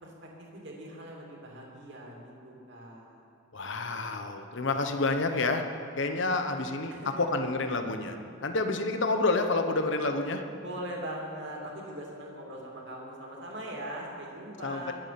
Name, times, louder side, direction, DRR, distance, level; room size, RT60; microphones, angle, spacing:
voice 1, 0.0-3.2 6.9-7.1 10.6-14.9, right 1 dB, 55° right, -2 dB, 2.9 m, -41 dB
voice 2, 3.5-5.6 6.0-8.2 8.4-10.4 14.6-14.9, left 3 dB, 60° left, 6 dB, 1.1 m, -29 dB
21.5 x 8.6 x 5.9 m, 2.6 s
head